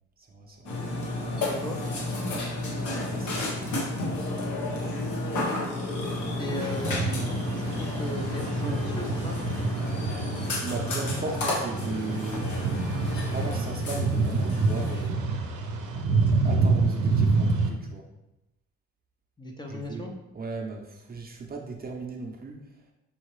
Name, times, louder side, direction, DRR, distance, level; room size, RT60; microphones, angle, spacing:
voice 1, 0.2-0.7 2.7-4.3 6.2-6.5 10.5-12.5 13.3-15.3 16.1-18.0 19.7-20.1 20.3-22.6, right 3 dB, 30° right, 1 dB, 0.7 m, -37 dB
Burping eructation, 0.6-15.1, left 2 dB, 70° left, 1.2 m, -31 dB
voice 2, 1.4-1.8 6.4-7.3 7.6-9.4 19.4-20.1, left 1 dB, 15° left, 0 dB, 0.7 m, -36 dB
sound 1, 6.6-17.7, right 4 dB, 85° right, 0.7 m, -28 dB
5.5 x 2.8 x 3.1 m, 0.92 s
cardioid pair, 90°, 30 cm